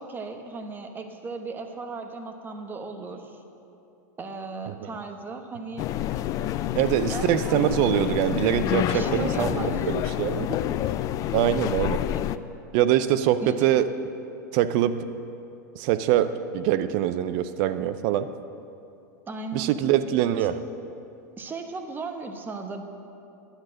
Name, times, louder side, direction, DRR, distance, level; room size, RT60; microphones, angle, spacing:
voice 1, 0.0-3.4 4.2-5.9 7.1-7.6 8.9-9.8 10.3-10.6 13.4-13.7 19.3-19.7 21.4-22.8, right 4 dB, 20° right, 5 dB, 1.1 m, -36 dB
sound 1, 5.8-12.4, left 12 dB, 40° left, 0.4 m, -28 dB
voice 2, 6.7-10.5 11.3-12.0 12.7-13.9 14.5-15.0 15.7-18.3 19.5-20.6, right 11 dB, 55° right, 12 dB, 0.6 m, -24 dB
10.5 x 8.1 x 6.3 m, 2.7 s
hypercardioid pair, 100°, 9 cm